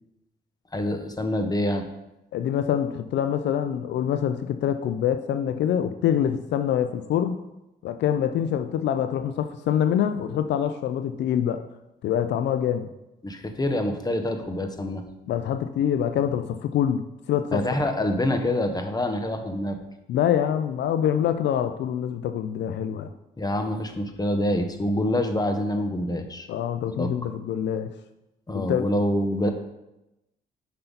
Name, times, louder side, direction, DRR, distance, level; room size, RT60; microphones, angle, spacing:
voice 1, 0.7-1.9 13.2-15.0 17.5-19.8 23.4-26.5 27.0-27.1 28.5-29.5, left 1 dB, 20° left, 6 dB, 1.2 m, -26 dB
voice 2, 2.3-7.4 7.8-11.6 12.0-12.9 15.3-17.6 20.1-23.1 26.5-27.9 28.5-28.9, left 9 dB, 70° left, 9 dB, 0.5 m, -25 dB
7.9 x 5.6 x 4.0 m, 0.94 s
supercardioid pair, 60°, 19 cm